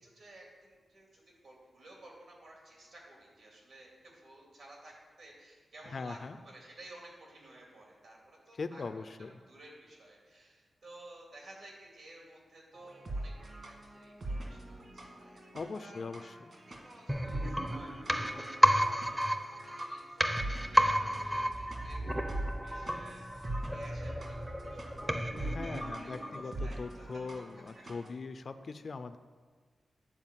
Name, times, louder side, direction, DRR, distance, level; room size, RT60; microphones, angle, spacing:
voice 1, 0.0-9.1 9.5-15.4 15.8-16.3 16.7-24.8 25.3-27.3 27.7-27.8, right 1 dB, 70° right, -2 dB, 2.6 m, -55 dB
voice 2, 5.9-6.4 8.5-9.4 15.5-16.4 25.4-29.2, left 4 dB, 45° left, 10 dB, 0.4 m, -41 dB
sound 1, 12.7-28.1, right 1 dB, 45° right, 1.6 m, -44 dB
sound 2, 17.1-26.8 27.1-27.2, equal, 10° right, 0.5 m, -32 dB
9.7 x 4.6 x 7.3 m, 1.5 s
wide cardioid pair, 145°, 0 cm